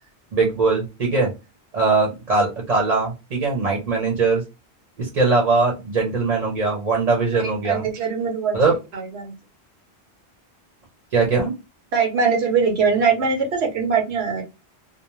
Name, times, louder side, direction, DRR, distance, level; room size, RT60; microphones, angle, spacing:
voice 1, 0.3-1.3 1.7-4.4 5.0-7.9 8.5-8.7 11.1-11.5, right 4 dB, 40° right, -1 dB, 0.8 m, -21 dB
voice 2, 7.4-8.6 8.9-9.3 11.9-14.4, right 5 dB, 75° right, 2 dB, 1.0 m, -22 dB
2.6 x 2.0 x 3.0 m, 0.26 s
omnidirectional pair, 1.1 m